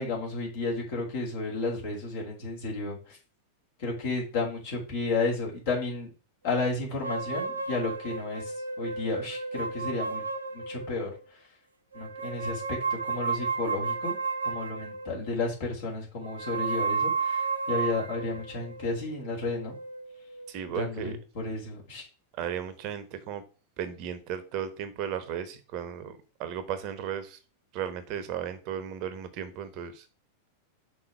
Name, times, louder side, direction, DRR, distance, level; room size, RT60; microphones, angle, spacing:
voice 1, 0.0-3.2 3.8-6.1 6.4-10.2 10.5-11.1 11.9-14.2 14.4-19.7 20.7-22.1, left 3 dB, 55° left, 3.7 m, -32 dB
sound 1, 7.0-11.2 11.9-15.4 16.2-20.6, right 4 dB, 75° right, 0.8 m, -33 dB
voice 2, 20.5-21.2 22.4-23.4 23.8-27.4 27.7-30.0, right 9 dB, 40° right, 1.1 m, -35 dB
6.0 x 4.2 x 6.2 m
figure-of-eight pair, 90°, 0 cm